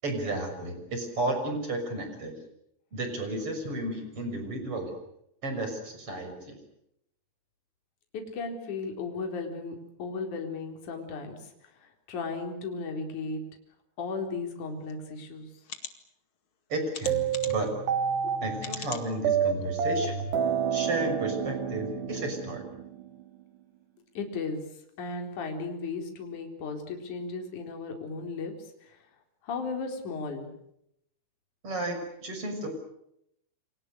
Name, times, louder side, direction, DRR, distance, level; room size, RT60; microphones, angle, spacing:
voice 1, 0.0-2.4 2.9-4.9 5.4-6.6 16.7-17.7 18.4-20.3 20.7-22.8 31.6-32.7, right 2 dB, 25° right, 6 dB, 6.8 m, -33 dB
voice 2, 8.1-13.4 14.0-15.5 18.2-18.3 24.1-24.6 25.0-29.0 29.4-30.5, left 4 dB, 40° left, 3 dB, 5.1 m, -35 dB
sound 1, 14.9-15.0 15.6-15.9 16.9-17.7 18.6-19.1 19.6-19.7 20.1-20.2, left 6 dB, 80° left, 1.1 m, -39 dB
sound 2, 17.1-23.2, right 7 dB, 60° right, 3.6 m, -29 dB
29.5 x 26.5 x 6.6 m, 0.76 s
omnidirectional pair, 5.9 m